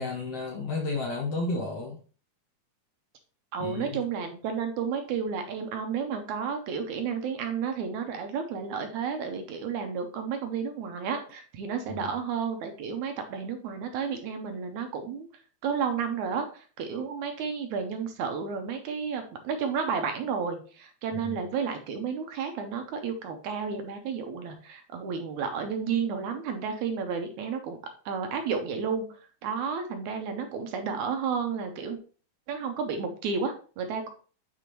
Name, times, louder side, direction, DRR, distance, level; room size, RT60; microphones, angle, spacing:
voice 1, 0.0-2.0 3.6-4.0 11.9-12.2 21.1-21.4, left 3 dB, 65° left, 1 dB, 1.6 m, -32 dB
voice 2, 3.5-15.3 15.6-27.8 28.1-29.1 29.4-32.0 32.5-34.1, right 6 dB, 75° right, 6 dB, 2.1 m, -32 dB
8.4 x 4.8 x 3.0 m, 0.39 s
omnidirectional pair, 3.7 m